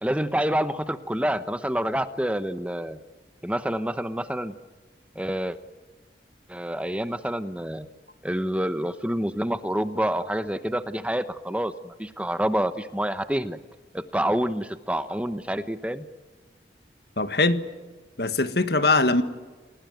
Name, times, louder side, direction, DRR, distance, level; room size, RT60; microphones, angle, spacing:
voice 1, 0.0-3.0 3.4-4.5 5.1-5.6 6.5-7.9 8.2-13.6 13.9-16.0, right 1 dB, 5° right, 11 dB, 0.9 m, -27 dB
voice 2, 17.2-17.7 18.2-19.2, left 3 dB, 65° left, 11 dB, 1.6 m, -21 dB
28.5 x 19.5 x 9.3 m, 1.3 s
head